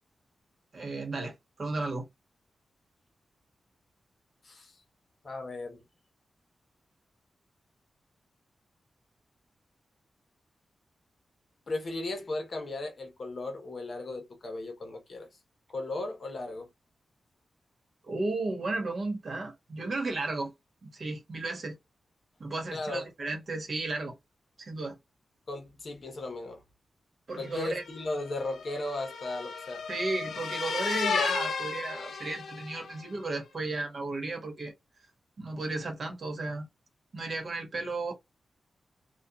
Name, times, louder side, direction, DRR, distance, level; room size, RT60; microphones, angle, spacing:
voice 1, 0.7-2.1 18.1-20.5 20.8-21.8 22.4-24.1 24.6-25.0 27.3-27.8 29.9-34.7 35.4-36.7 37.1-38.1, right 2 dB, 50° right, 1.1 m, -34 dB
voice 2, 4.4-4.8 5.2-5.8 11.7-15.3 15.7-16.7 22.7-23.0 25.5-26.6 27.4-29.8, left 2 dB, 50° left, 1.0 m, -36 dB
sound 1, 27.6-33.0, left 5 dB, 85° left, 0.5 m, -34 dB
2.8 x 2.3 x 2.3 m
wide cardioid pair, 95°, 0 cm